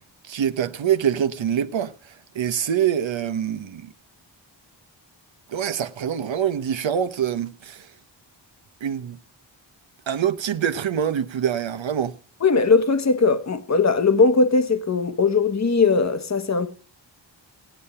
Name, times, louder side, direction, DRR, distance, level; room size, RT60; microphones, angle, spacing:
voice 1, 0.3-1.9 2.3-3.9 5.5-7.9 8.8-9.2 10.1-12.1, right 9 dB, 80° right, 1.0 m, -25 dB
voice 2, 12.4-16.7, left 4 dB, 35° left, 1.2 m, -19 dB
15.5 x 10.0 x 5.6 m
wide cardioid pair, 90°, 45 cm